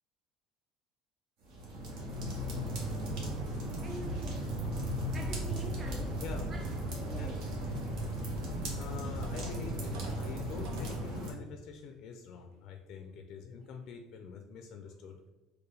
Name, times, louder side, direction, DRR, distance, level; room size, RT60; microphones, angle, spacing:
sound 1, 1.4-11.3, equal, 65° right, 1.1 m, -36 dB
voice 1, 3.8-4.6 5.1-6.2 6.5-7.6 14.8-15.2, right 2 dB, 25° right, 0.4 m, -47 dB
voice 2, 8.7-15.2, left 6 dB, 60° left, 0.4 m, -45 dB
sound 2, 9.2-11.1 11.7-11.8 12.4-12.6, right 3 dB, 90° right, 0.6 m, -49 dB
4.4 x 2.2 x 3.2 m
cardioid pair, 125°, 0 cm